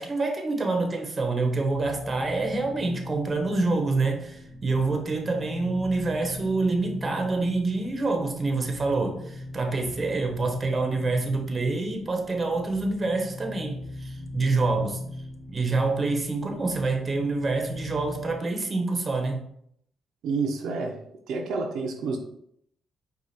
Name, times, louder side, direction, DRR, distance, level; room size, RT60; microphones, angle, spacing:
voice 1, 0.0-15.0 15.5-19.5, right 3 dB, 30° right, 3 dB, 0.9 m, -27 dB
sound 1, 1.5-18.5, left 1 dB, 20° left, 1.0 m, -40 dB
voice 2, 20.2-21.0 21.3-22.2, right 4 dB, 80° right, 1 dB, 0.7 m, -28 dB
4.8 x 2.5 x 4.1 m, 0.70 s
cardioid pair, 90°, 0 cm